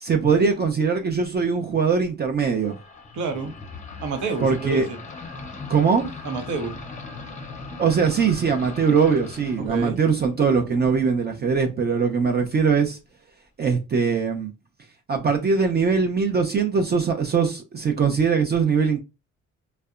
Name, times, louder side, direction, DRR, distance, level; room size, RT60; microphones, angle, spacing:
voice 1, 0.0-2.8 4.4-4.9 5.7-6.1 7.8-13.0 13.6-14.5 15.1-19.0, right 5 dB, 35° right, 0.5 m, -21 dB
sound 1, 2.5-11.9, left 3 dB, 25° left, 0.6 m, -39 dB
voice 2, 3.1-3.5 4.0-5.0 6.2-6.8 9.6-10.0, right 4 dB, 75° right, 0.8 m, -29 dB
2.6 x 2.1 x 2.3 m
cardioid pair, 90°, 30 cm